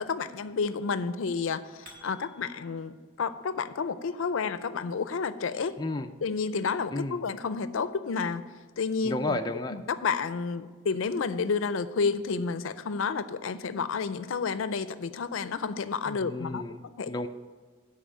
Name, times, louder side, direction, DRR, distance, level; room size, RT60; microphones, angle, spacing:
voice 1, 0.0-5.8 6.2-8.5 8.8-9.4 9.7-16.6 17.0-17.1, left 5 dB, 80° left, 13 dB, 0.5 m, -30 dB
sound 1, 1.8-2.9, equal, 45° right, 2.0 m, -53 dB
voice 2, 5.8-6.1 6.9-7.2 9.0-9.8 16.1-16.8 17.1-17.3, left 2 dB, 20° left, 5 dB, 0.4 m, -32 dB
10.5 x 4.2 x 7.5 m, 1.5 s
head